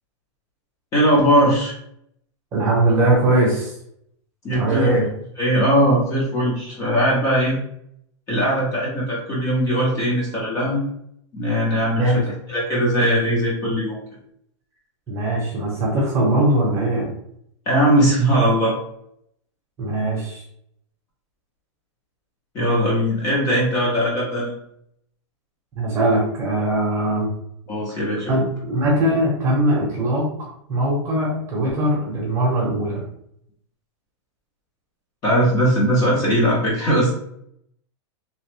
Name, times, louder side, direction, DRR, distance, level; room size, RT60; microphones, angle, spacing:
voice 1, 0.9-1.7 4.4-4.9 5.4-7.6 8.3-10.8 11.3-12.2 12.5-14.0 17.7-18.7 22.5-24.5 27.7-28.4 35.2-37.1, equal, 20° left, -4 dB, 0.6 m, -19 dB
voice 2, 2.5-3.7 4.5-5.1 12.0-12.2 15.1-17.1 19.8-20.4 25.8-27.3 28.3-33.0, right 1 dB, 20° right, -4 dB, 0.8 m, -20 dB
3.0 x 2.1 x 3.1 m, 0.71 s
supercardioid pair, 170°, 15 cm